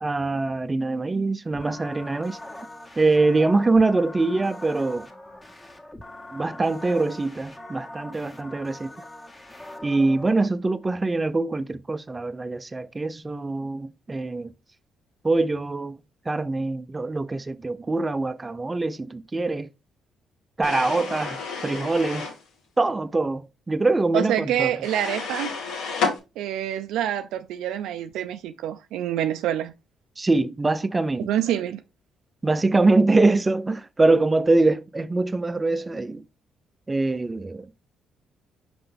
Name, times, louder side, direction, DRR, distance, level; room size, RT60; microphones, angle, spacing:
voice 1, 0.0-2.4 3.0-5.1 6.3-8.9 9.8-14.5 15.2-16.0 16.3-19.7 20.6-22.3 22.8-24.7 30.2-31.3 32.4-36.2 36.9-37.7, right 3 dB, 20° right, 0.6 m, -23 dB
sound 1, 1.5-10.3, left 1 dB, 20° left, 1.8 m, -42 dB
sound 2, 20.6-22.4 24.8-26.2, left 5 dB, 90° left, 2.6 m, -30 dB
voice 2, 24.1-25.5 26.4-29.7 31.2-31.8, right 11 dB, 90° right, 0.4 m, -26 dB
5.7 x 5.1 x 3.4 m
cardioid pair, 90°, 0 cm